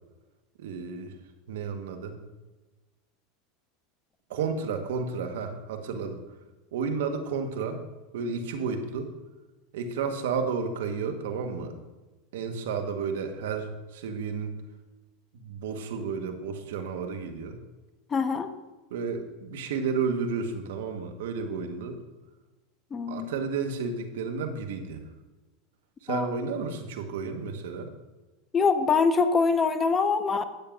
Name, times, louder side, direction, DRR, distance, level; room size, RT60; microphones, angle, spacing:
voice 1, 0.6-1.2 1.5-2.2 4.3-6.2 6.7-7.8 8.1-9.1 9.7-11.7 12.3-14.5 15.3-17.6 18.9-22.0 23.1-25.0 26.0-27.9, right 5 dB, 80° right, 6 dB, 1.2 m, -32 dB
voice 2, 18.1-18.5 22.9-23.3 26.1-26.3 28.5-30.4, left 5 dB, 25° left, 9 dB, 0.9 m, -24 dB
13.5 x 8.7 x 2.5 m, 1.1 s
hypercardioid pair, 105°, 0 cm